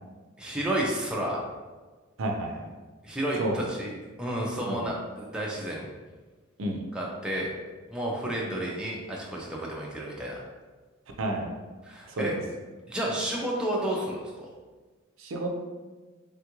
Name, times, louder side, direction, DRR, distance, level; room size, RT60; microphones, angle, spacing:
voice 1, 0.4-1.4 3.0-3.9 4.2-5.9 6.9-7.5 7.9-10.4 11.9-12.3 12.9-14.5, right 1 dB, 5° right, -4 dB, 0.4 m, -31 dB
voice 2, 2.2-2.7 3.4-3.6 4.7-4.9 6.6-6.8 11.2-11.5 12.1-12.4 15.2-15.5, right 1 dB, 75° right, 2 dB, 0.5 m, -30 dB
3.6 x 2.3 x 2.9 m, 1.3 s
head